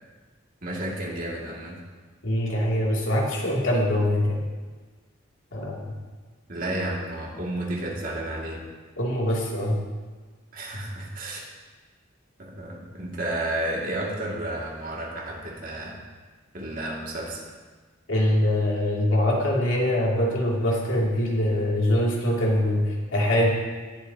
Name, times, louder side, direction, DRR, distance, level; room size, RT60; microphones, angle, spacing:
voice 1, 0.6-1.8 6.5-8.6 10.5-11.4 12.4-16.0 16.5-17.4, right 1 dB, 45° right, -3 dB, 2.3 m, -31 dB
voice 2, 2.2-4.5 5.5-5.9 9.0-9.8 18.1-23.5, left 1 dB, 85° left, -3 dB, 2.7 m, -23 dB
19.0 x 8.2 x 2.9 m, 1.4 s
head